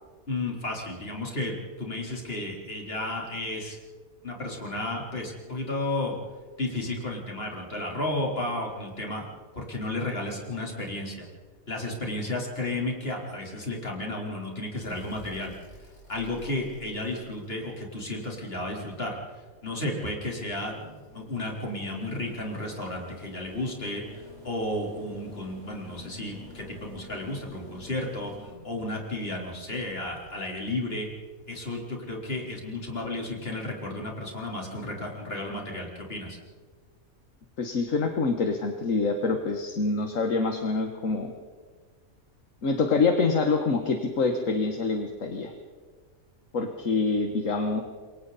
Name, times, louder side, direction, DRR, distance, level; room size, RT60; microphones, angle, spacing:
voice 1, 0.3-3.8 4.2-6.2 6.6-9.3 9.6-11.3 11.7-15.5 16.1-19.2 19.6-31.1 31.5-36.4, left 2 dB, 45° left, -1 dB, 4.2 m, -33 dB
sound 1, 14.8-19.0 20.2-31.4 33.0-33.1, left 2 dB, 85° left, 6.9 m, -50 dB
voice 2, 37.6-41.3 42.6-45.5 46.5-47.8, left 4 dB, 65° left, 5 dB, 1.8 m, -26 dB
28.5 x 22.5 x 4.2 m, 1.5 s
omnidirectional pair, 1.5 m